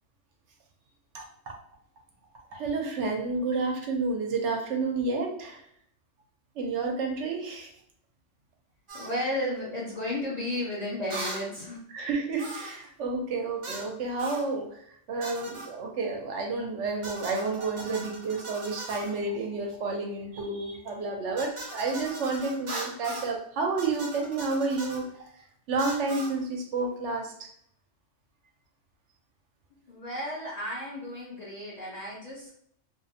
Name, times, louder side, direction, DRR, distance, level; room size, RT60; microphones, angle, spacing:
voice 1, 1.1-1.5 2.5-5.6 6.6-7.7 11.9-25.1 25.7-27.3, right 3 dB, 75° right, 2 dB, 0.9 m, -30 dB
voice 2, 8.9-11.8 29.9-32.5, left 1 dB, 45° left, -5 dB, 0.6 m, -33 dB
sound 1, 8.9-9.2 11.1-11.5 12.4-12.8 13.6-13.9 14.2-14.5 15.2-15.7 17.0-19.1 21.4-23.3 23.8-25.0 25.8-26.3, right 2 dB, 50° right, 0.4 m, -39 dB
2.5 x 2.0 x 2.6 m, 0.67 s
omnidirectional pair, 1.3 m